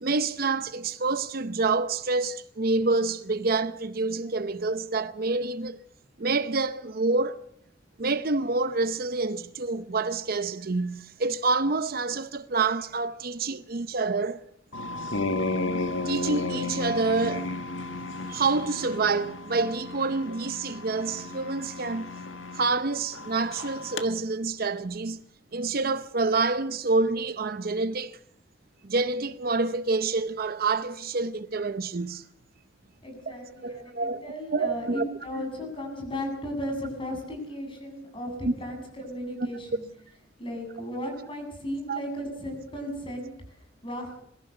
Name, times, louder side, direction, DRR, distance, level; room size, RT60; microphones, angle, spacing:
voice 1, 0.0-5.8 6.2-7.4 8.0-14.4 16.1-17.6 18.3-22.1 22.5-25.2 25.5-28.2 28.8-32.2 33.6-35.1 35.4-35.5 38.4-38.5 41.9-42.0, right 3 dB, 50° right, 0.7 m, -27 dB
sound 1, 14.7-24.1, left 2 dB, 80° left, 1.7 m, -33 dB
voice 2, 33.0-39.8 40.4-44.2, equal, 25° left, 8.0 m, -35 dB
22.5 x 15.5 x 8.0 m
head